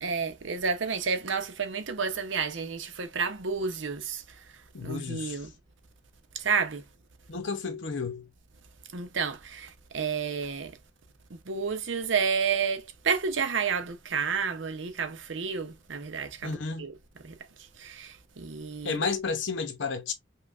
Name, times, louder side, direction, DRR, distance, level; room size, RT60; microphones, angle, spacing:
voice 1, 0.0-5.5 6.3-6.8 8.9-10.8 11.3-16.9 17.2-19.0, right 5 dB, 80° right, 0.8 m, -31 dB
voice 2, 4.7-5.4 7.3-8.3 16.4-16.9 18.8-20.1, left 4 dB, 75° left, 0.7 m, -32 dB
5.6 x 2.3 x 2.5 m
head